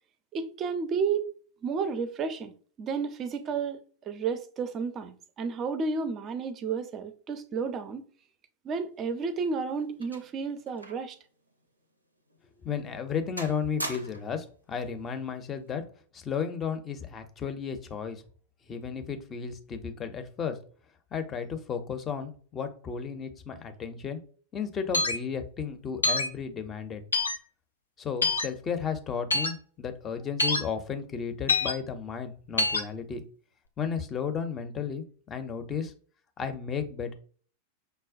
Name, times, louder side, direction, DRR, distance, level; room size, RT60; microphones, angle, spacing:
voice 1, 0.3-1.3 1.6-2.5 2.8-8.0 8.6-11.2, right 5 dB, 30° right, 0.4 m, -32 dB
sound 1, 9.1-11.2 11.5-11.6 12.3-12.4 12.8-13.1 13.4-14.4 15.4-15.7, right 1 dB, 85° right, 0.5 m, -41 dB
voice 2, 12.6-15.8 16.1-18.2 18.7-20.6 21.1-24.2 24.5-27.0 28.0-33.2 33.8-35.9 36.4-37.1, left 6 dB, 25° left, 0.5 m, -34 dB
sound 2, 24.9-25.2 26.0-26.3 27.1-27.4 28.2-28.5 29.3-29.5 30.4-30.6 31.5-31.7 32.6-32.8, left 3 dB, 75° left, 0.5 m, -25 dB
5.7 x 2.1 x 2.5 m
figure-of-eight pair, 90°, 0 cm